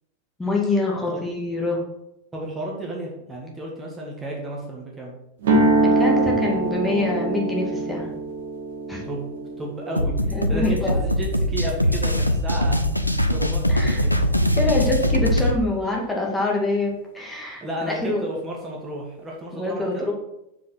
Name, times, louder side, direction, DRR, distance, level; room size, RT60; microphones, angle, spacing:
voice 1, 0.4-1.8 5.8-8.1 8.9-9.0 10.3-11.0 13.7-14.0 14.6-18.3 19.5-20.1, left 2 dB, 10° left, -2 dB, 2.1 m, -25 dB
voice 2, 2.3-5.1 9.0-9.3 9.6-12.8 13.3-14.4 17.6-20.1, right 1 dB, 15° right, -2 dB, 1.9 m, -33 dB
sound 1, 5.4-13.4, right 2 dB, 60° right, 1.7 m, -25 dB
sound 2, 9.9-15.6, left 1 dB, 90° left, 0.6 m, -22 dB
6.9 x 5.2 x 6.0 m, 0.85 s
figure-of-eight pair, 90°, 0 cm